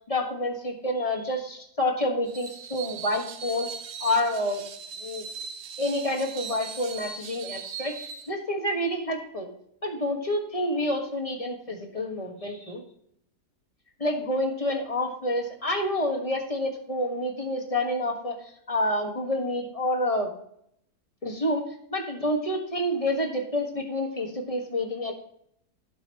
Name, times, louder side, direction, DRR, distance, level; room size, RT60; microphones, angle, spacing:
voice 1, 0.1-3.7 4.0-4.6 5.0-5.2 5.8-9.5 9.8-12.8 14.0-20.3 21.2-25.1, left 1 dB, 25° left, 2 dB, 1.5 m, -28 dB
Screech, 2.3-8.3, right 6 dB, 75° right, 1.3 m, -39 dB
17.0 x 5.7 x 3.0 m, 0.70 s
omnidirectional pair, 1.6 m